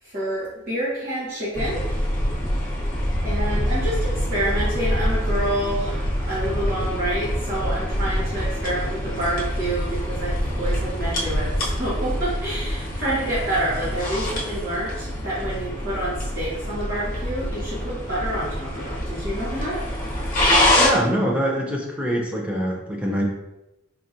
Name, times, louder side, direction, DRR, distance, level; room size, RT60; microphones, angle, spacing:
voice 1, 0.0-2.0 3.2-19.9, right 1 dB, 45° right, -10 dB, 1.2 m, -28 dB
sound 1, 1.5-20.9, equal, 40° left, 0.8 m, -25 dB
voice 2, 20.8-23.2, equal, 5° right, -2 dB, 0.5 m, -24 dB
4.3 x 2.9 x 2.5 m, 0.90 s
head